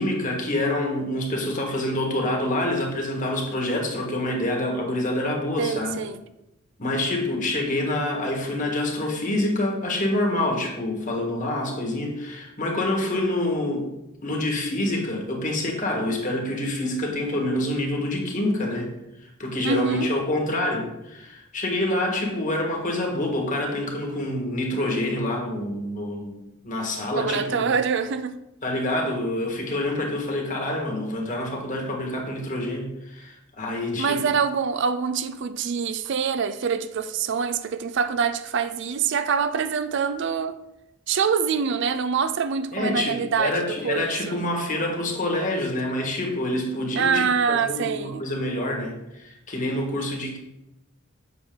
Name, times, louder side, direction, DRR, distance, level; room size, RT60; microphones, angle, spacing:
voice 1, 0.0-6.1 6.8-13.9 14.2-18.9 19.2-26.4 26.6-27.7 28.6-34.2 42.7-50.4, left 1 dB, 40° left, 1.7 m, -27 dB
voice 2, 5.6-6.2 19.6-20.1 27.1-28.4 33.9-40.6 41.1-44.4 44.8-44.9 47.0-48.2, right 6 dB, 60° right, 0.4 m, -25 dB
8.1 x 6.3 x 3.8 m
head